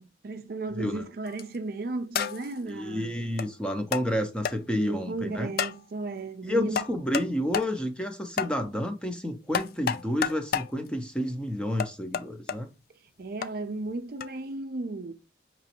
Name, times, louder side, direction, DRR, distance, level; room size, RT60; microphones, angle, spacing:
voice 1, 0.0-3.2 4.8-6.8 13.2-15.1, right 3 dB, 50° right, 0.5 m, -35 dB
sound 1, 1.2-1.6 2.1-2.6 3.4-3.5 3.9-4.1 4.4-4.6 5.6-5.8 6.8-7.3 7.5-7.7 8.4-8.5 9.5-10.7 11.8-12.6 13.4-13.5 14.2-14.3, left 7 dB, 50° left, 0.3 m, -30 dB
voice 2, 2.7-5.5 6.4-12.7, equal, 5° left, 0.6 m, -30 dB
5.9 x 3.0 x 2.9 m
head